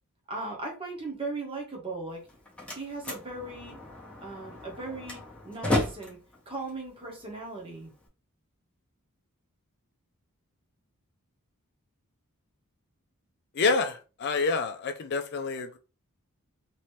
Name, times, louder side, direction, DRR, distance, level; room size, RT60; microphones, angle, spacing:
voice 1, 0.3-2.2 2.7-3.7 4.2-6.2 6.5-7.9, right 2 dB, 25° right, 1.1 m, -38 dB
Slam, 2.1-8.1, left 1 dB, 5° left, 0.8 m, -35 dB
voice 2, 13.5-15.8, left 4 dB, 50° left, 0.4 m, -28 dB
3.0 x 2.8 x 3.1 m
head